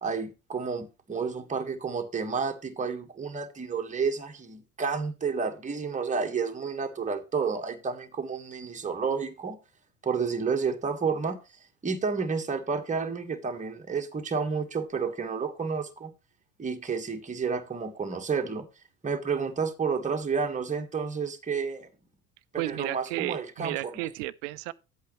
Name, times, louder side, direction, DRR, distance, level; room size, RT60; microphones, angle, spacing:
voice 1, 0.0-9.6 10.0-11.4 11.8-16.1 16.6-18.7 19.0-21.9 22.5-23.9, right 5 dB, 15° right, 1.7 m, -30 dB
voice 2, 22.6-24.7, right 18 dB, 60° right, 0.8 m, -33 dB
11.5 x 8.3 x 3.2 m
hypercardioid pair, 75°, 42 cm